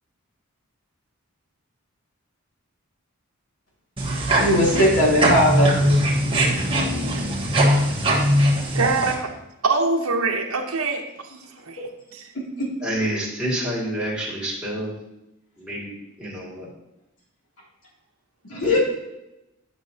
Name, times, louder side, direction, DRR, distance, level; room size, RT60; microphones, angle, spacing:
sound 1, 4.0-9.1, right 1 dB, 25° right, 1.3 m, -21 dB
voice 1, 4.4-5.9 12.6-12.7 18.5-18.8, left 1 dB, 70° left, -4 dB, 2.7 m, -19 dB
voice 2, 8.7-9.3 9.6-11.4 11.7-12.3, right 3 dB, 75° right, 1 dB, 0.8 m, -24 dB
voice 3, 12.8-14.9 15.6-15.9 16.2-16.7, right 1 dB, 5° right, -6 dB, 2.1 m, -28 dB
9.6 x 6.3 x 2.8 m, 0.90 s
head